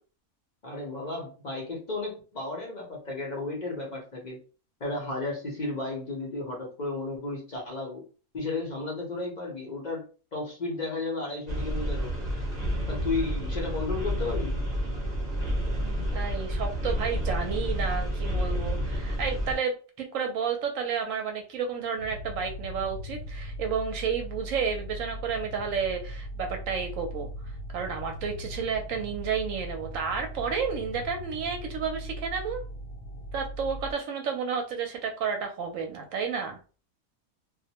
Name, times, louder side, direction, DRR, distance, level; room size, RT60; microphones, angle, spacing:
voice 1, 0.6-4.4 4.8-8.0 8.3-10.0 10.3-12.3 12.9-14.6, left 3 dB, 45° left, -1 dB, 0.6 m, -33 dB
sound 1, 11.5-19.5, equal, 40° right, 0.6 m, -29 dB
voice 2, 15.7-19.7 20.1-32.6 33.3-36.6, right 6 dB, 70° right, 4 dB, 0.9 m, -31 dB
sound 2, 22.0-33.9, equal, 70° left, 1.0 m, -39 dB
2.4 x 2.1 x 2.8 m, 0.36 s
omnidirectional pair, 1.5 m